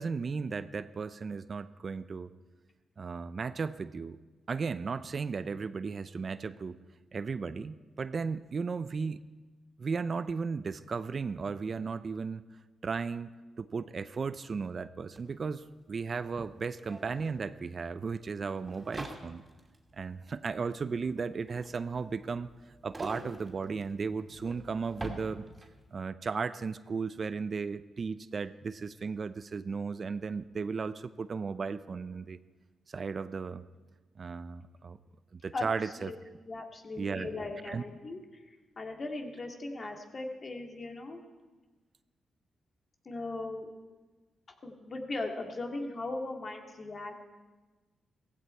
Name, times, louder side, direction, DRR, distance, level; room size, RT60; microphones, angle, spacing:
voice 1, 0.0-2.3 3.0-4.2 4.5-6.8 7.1-9.3 9.8-12.5 12.8-19.4 19.9-22.5 22.8-25.4 25.9-32.4 32.9-33.7 34.2-35.0 35.3-36.1 37.0-37.3 37.7-37.8, right 5 dB, 50° right, 14 dB, 0.5 m, -35 dB
sound 1, 15.2-15.3 15.4-25.9, right 1 dB, 20° right, 2.9 m, -47 dB
voice 2, 35.5-36.2 36.5-41.2 43.0-43.7 44.6-47.1, left 2 dB, 45° left, 3 dB, 2.4 m, -38 dB
16.5 x 15.5 x 4.6 m, 1.3 s
cardioid pair, 65°, 0 cm